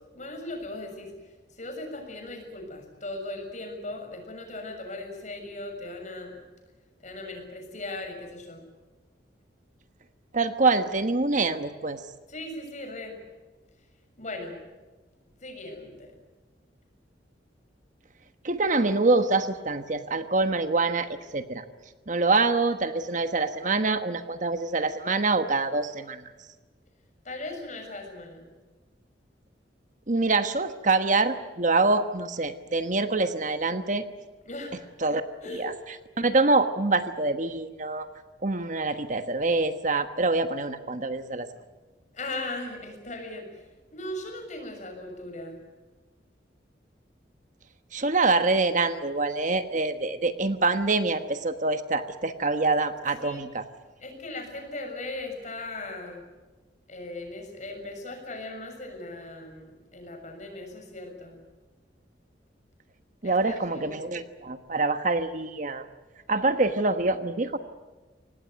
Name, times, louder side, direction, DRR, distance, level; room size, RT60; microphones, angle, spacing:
voice 1, 0.1-6.4 7.0-8.6 12.3-13.2 14.2-14.6 15.4-16.1 27.2-28.5 34.4-34.8 35.4-35.8 42.1-45.6 53.1-53.5 54.0-56.2 56.9-61.4 63.2-64.1, left 2 dB, 45° left, 4 dB, 6.8 m, -38 dB
voice 2, 10.3-12.0 18.4-21.6 22.1-26.2 30.1-34.0 35.0-35.2 35.5-35.7 36.2-38.1 38.4-41.5 47.9-53.6 63.2-65.8 66.3-67.6, right 3 dB, 45° right, 9 dB, 1.3 m, -25 dB
25.0 x 19.5 x 9.3 m, 1.2 s
head